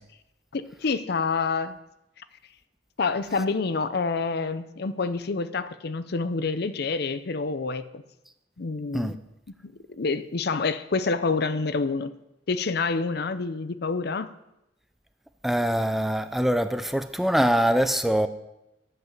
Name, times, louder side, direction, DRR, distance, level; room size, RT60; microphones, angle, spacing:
voice 1, 0.5-1.8 3.0-8.0 8.6-9.2 9.6-12.1 12.5-14.3, left 4 dB, 60° left, 13 dB, 0.6 m, -27 dB
voice 2, 15.4-18.3, equal, ahead, 9 dB, 0.5 m, -23 dB
11.0 x 8.0 x 6.0 m, 0.91 s
head